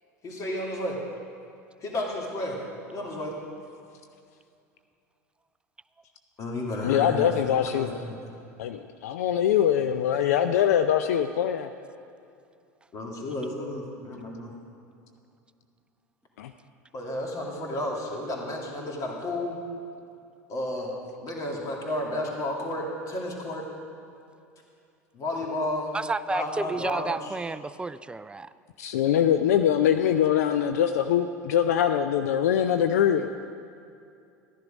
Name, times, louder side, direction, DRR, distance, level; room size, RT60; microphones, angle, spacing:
voice 1, 0.2-1.0 1.8-2.6 2.9-3.4 6.4-8.3 12.9-14.5 16.9-19.6 20.5-20.9 21.2-23.6 25.1-25.9 26.3-27.4, left 1 dB, 40° left, -1 dB, 2.5 m, -32 dB
voice 2, 6.8-8.0 8.6-11.7 16.4-16.5 28.8-33.3, left 9 dB, 75° left, 9 dB, 0.4 m, -23 dB
voice 3, 25.9-28.5, right 3 dB, 10° right, 15 dB, 0.3 m, -31 dB
13.0 x 10.5 x 5.2 m, 2.5 s
hypercardioid pair, 80°, 9 cm